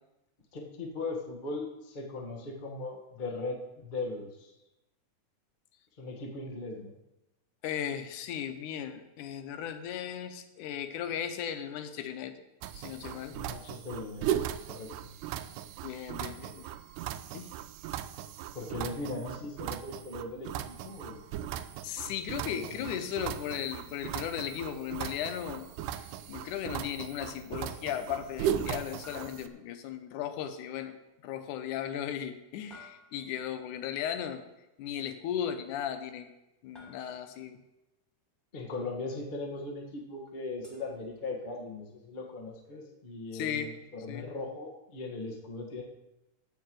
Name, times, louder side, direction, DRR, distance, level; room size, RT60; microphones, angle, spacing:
voice 1, 0.5-4.5 6.0-6.9 13.3-15.1 18.5-21.2 22.5-22.9 38.5-45.8, left 3 dB, 60° left, 0 dB, 0.5 m, -39 dB
voice 2, 7.6-12.4 12.7-13.4 15.8-16.7 17.3-17.5 21.8-25.7 26.0-31.0 31.2-34.4 34.8-36.3 36.6-37.6 43.3-43.7 44.1-44.3, left 9 dB, 85° left, 9 dB, 2.3 m, -36 dB
sound 1, 12.6-29.5, right 10 dB, 90° right, 2.1 m, -38 dB
sound 2, 25.8-26.4 29.0-30.3 32.7-33.6 36.7-37.6 40.6-41.7, left 2 dB, ahead, 1.7 m, -56 dB
10.5 x 4.6 x 7.7 m, 0.95 s
omnidirectional pair, 3.5 m